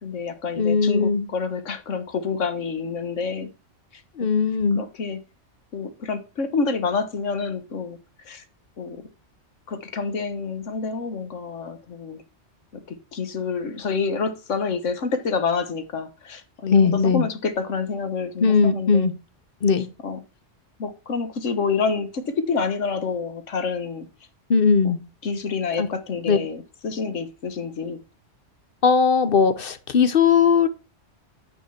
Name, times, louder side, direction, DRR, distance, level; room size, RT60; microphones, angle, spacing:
voice 1, 0.0-3.5 3.9-4.0 4.7-5.2 5.7-8.0 8.2-8.4 8.8-9.0 9.7-12.2 12.7-19.1 19.8-20.2 20.8-24.1 25.2-28.0, left 5 dB, 85° left, 1.5 m, -28 dB
voice 2, 0.6-1.2 4.2-4.8 16.7-17.3 18.4-19.1 19.6-19.9 24.5-25.0 25.8-25.9 26.3-26.4 28.8-30.7, left 5 dB, 50° left, 1.0 m, -19 dB
9.4 x 4.4 x 5.6 m
omnidirectional pair, 1.2 m